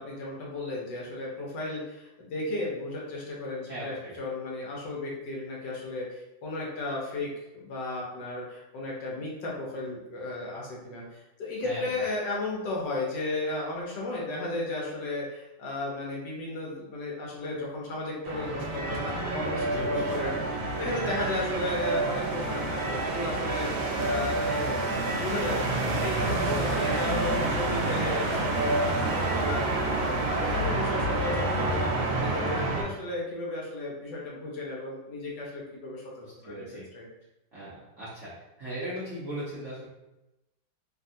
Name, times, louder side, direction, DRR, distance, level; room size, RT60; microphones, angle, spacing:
voice 1, 0.0-20.4 20.8-26.5 26.8-30.1 30.4-36.0 36.4-36.7 36.9-37.1, left 2 dB, 70° left, -3 dB, 1.3 m, -34 dB
voice 2, 3.7-4.1 11.6-11.9 19.6-20.1 26.4-27.2 36.2-36.8 37.5-38.3 38.6-39.8, equal, 60° right, -10 dB, 0.7 m, -37 dB
sound 1, 18.3-32.8, right 2 dB, 80° right, 1.3 m, -28 dB
3.3 x 2.3 x 2.6 m, 0.97 s
omnidirectional pair, 2.1 m